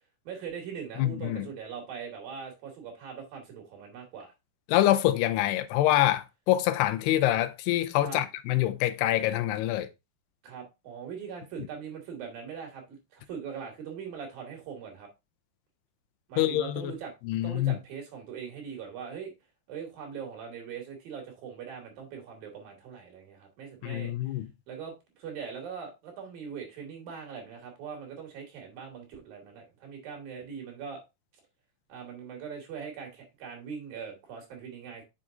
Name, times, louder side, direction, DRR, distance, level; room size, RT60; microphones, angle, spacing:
voice 1, 0.3-4.3 8.0-8.2 10.4-15.1 16.3-17.1 17.4-19.3 19.7-24.1 24.7-31.0 31.9-35.0, right 6 dB, 65° right, 4.0 m, -41 dB
voice 2, 1.0-1.5 4.7-9.9 16.4-16.9 17.3-17.8 23.8-24.5, left 14 dB, 90° left, 2.7 m, -25 dB
7.7 x 6.2 x 2.6 m
omnidirectional pair, 4.7 m